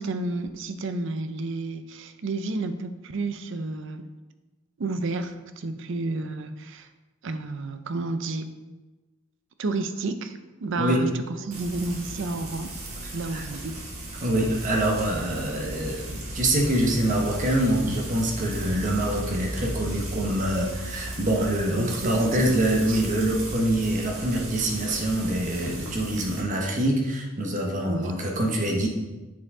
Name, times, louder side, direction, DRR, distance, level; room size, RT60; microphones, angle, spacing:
voice 1, 0.0-4.1 4.8-6.9 7.2-8.5 9.6-12.7 13.1-13.8 21.8-22.4 22.9-23.0 27.8-28.1, right 3 dB, 60° right, 9 dB, 0.5 m, -31 dB
voice 2, 10.8-11.1 13.3-13.4 14.2-28.9, right 1 dB, 35° right, 0 dB, 1.0 m, -25 dB
Frying (food), 11.5-26.4, right 1 dB, 85° right, 1.6 m, -36 dB
7.3 x 4.5 x 3.6 m, 1.2 s
head